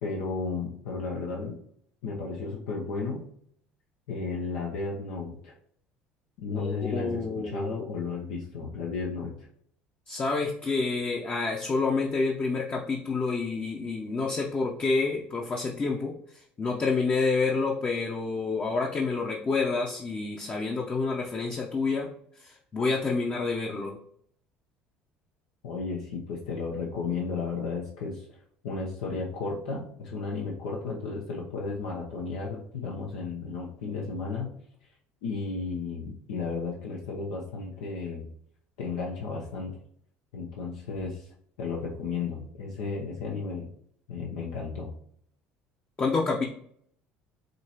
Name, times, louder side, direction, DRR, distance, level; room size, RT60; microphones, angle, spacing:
voice 1, 0.0-1.6 2.0-3.3 4.1-5.5 6.4-9.5 25.6-28.4 28.6-34.5 35.2-38.3 38.8-39.8 40.3-41.3 41.6-43.7 44.1-44.9, left 4 dB, 75° left, -2 dB, 0.8 m, -33 dB
voice 2, 6.5-8.1 10.1-16.1 16.6-22.1 22.4-24.0 46.0-46.4, left 4 dB, 30° left, 0 dB, 0.8 m, -28 dB
5.2 x 2.9 x 2.9 m, 0.64 s
hypercardioid pair, 70°, 5 cm